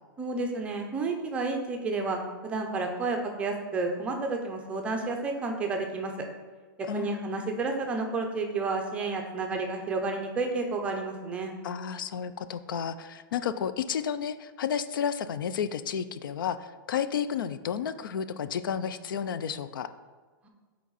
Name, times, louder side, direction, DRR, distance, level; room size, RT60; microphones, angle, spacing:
voice 1, 0.2-6.1 6.8-11.5, right 3 dB, 10° right, 3 dB, 0.6 m, -31 dB
voice 2, 6.9-7.5 11.6-19.9, left 8 dB, 70° left, 12 dB, 0.4 m, -32 dB
7.5 x 4.5 x 4.0 m, 1.4 s
hypercardioid pair, 170°, 11 cm